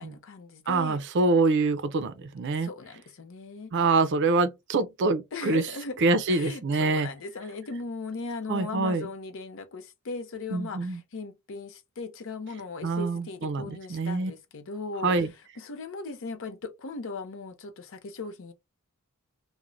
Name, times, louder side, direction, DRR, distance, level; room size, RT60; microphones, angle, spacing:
voice 1, 0.0-1.0 2.6-3.9 5.3-6.0 6.3-15.2 15.6-18.5, left 3 dB, 60° left, 0.6 m, -38 dB
voice 2, 0.7-2.7 3.7-5.6 6.0-7.1 8.5-9.1 10.5-11.0 12.8-14.3 15.0-15.3, right 3 dB, 55° right, 0.4 m, -25 dB
2.5 x 2.1 x 3.0 m
head